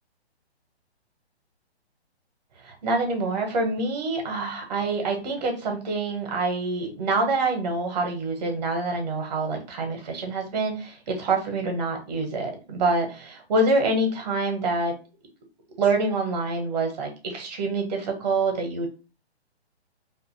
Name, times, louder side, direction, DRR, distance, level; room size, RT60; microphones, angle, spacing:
voice 1, 2.6-15.0 15.8-18.9, right 3 dB, 40° right, 3 dB, 0.9 m, -26 dB
2.6 x 2.5 x 2.6 m, 0.33 s
figure-of-eight pair, 135°, 33 cm